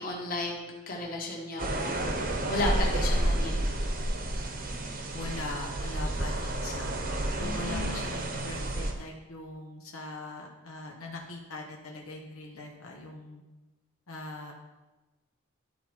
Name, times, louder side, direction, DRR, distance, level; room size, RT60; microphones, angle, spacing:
voice 1, 0.0-3.5 7.4-7.9, left 2 dB, 40° left, -2 dB, 1.7 m, -34 dB
sound 1, 1.6-8.9, right 1 dB, 40° right, 1.0 m, -30 dB
voice 2, 5.1-7.0 7.4-13.4 14.1-14.5, left 2 dB, 80° left, 0 dB, 1.1 m, -41 dB
12.5 x 4.3 x 4.6 m, 1.1 s
head